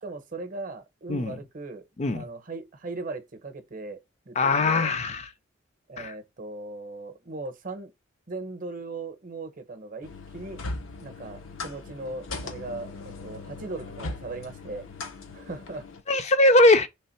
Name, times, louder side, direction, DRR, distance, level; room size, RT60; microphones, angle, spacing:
voice 1, 0.0-1.8 2.1-4.0 4.3-4.9 5.9-7.9 8.3-10.1 10.3-10.6 11.0-14.9 15.3-15.9, right 3 dB, 40° right, 0.7 m, -38 dB
voice 2, 4.4-5.2 6.0-6.1 16.1-16.9, left 2 dB, 35° left, 0.4 m, -21 dB
sound 1, 10.0-16.0, left 3 dB, 75° left, 0.7 m, -39 dB
3.3 x 3.3 x 4.3 m
head